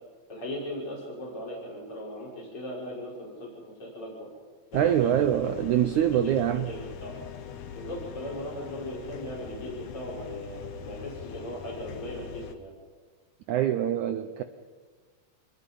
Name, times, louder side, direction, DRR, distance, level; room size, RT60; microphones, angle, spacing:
voice 1, 0.3-4.3 4.7-5.3 6.2-7.2 7.7-12.7, equal, 35° left, -5 dB, 6.6 m, -38 dB
sound 1, 4.7-12.5, left 8 dB, 65° left, 1.7 m, -42 dB
voice 2, 4.7-6.7 13.5-14.4, right 10 dB, 90° right, 9 dB, 1.7 m, -24 dB
26.5 x 21.5 x 5.5 m, 1.5 s
omnidirectional pair, 4.5 m